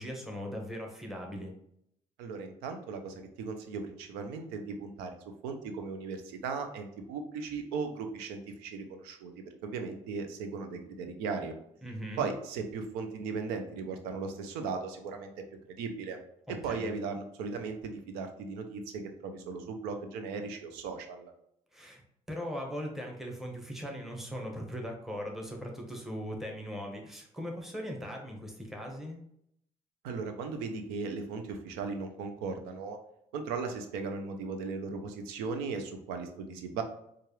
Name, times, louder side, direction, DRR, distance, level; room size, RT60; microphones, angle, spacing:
voice 1, 0.0-1.5 11.8-12.2 16.5-16.9 21.7-22.0 22.3-29.2, equal, ahead, 0 dB, 1.1 m, -39 dB
voice 2, 2.2-5.2 5.4-11.5 12.2-15.3 15.7-16.2 16.5-21.3 30.0-33.0 33.3-36.8, right 4 dB, 90° right, 6 dB, 0.5 m, -37 dB
4.5 x 2.4 x 3.1 m, 0.73 s
hypercardioid pair, 50°, 16 cm